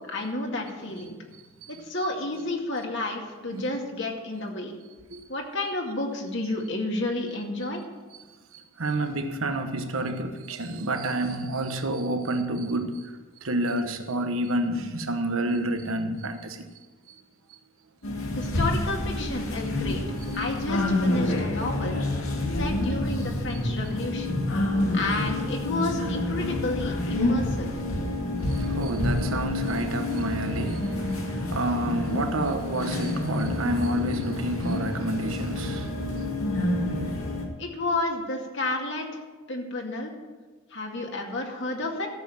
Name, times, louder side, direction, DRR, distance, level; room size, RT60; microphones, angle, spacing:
voice 1, 0.1-1.2 1.7-4.8 5.3-7.8 18.4-20.0 20.3-22.0 22.5-24.4 24.9-27.7 37.6-39.2 39.5-40.1 40.7-42.1, left 2 dB, 60° left, 2.2 m, -31 dB
voice 2, 8.8-13.0 13.4-16.6 20.3-20.6 21.2-21.3 28.4-36.2, right 1 dB, 85° right, 1.2 m, -29 dB
sound 1, 18.0-37.5, left 1 dB, 90° left, 2.1 m, -28 dB
13.5 x 7.5 x 7.5 m
head